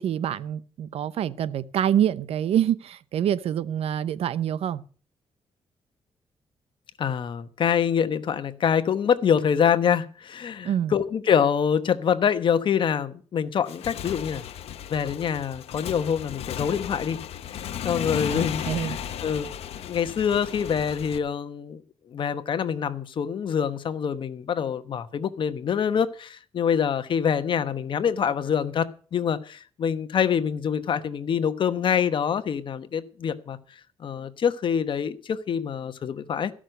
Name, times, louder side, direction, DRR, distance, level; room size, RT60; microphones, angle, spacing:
voice 1, 0.0-4.8 10.6-10.9 18.3-19.0, right 10 dB, 75° right, 0.7 m, -26 dB
voice 2, 7.0-14.4 14.9-17.2 17.5-19.0 19.2-19.5 19.8-21.8 22.1-33.6 34.0-36.5, left 7 dB, 55° left, 1.1 m, -25 dB
Motorcycle / Engine, 13.6-21.2, left 10 dB, 85° left, 0.9 m, -35 dB
14.5 x 6.3 x 7.9 m
cardioid pair, 125°, 10 cm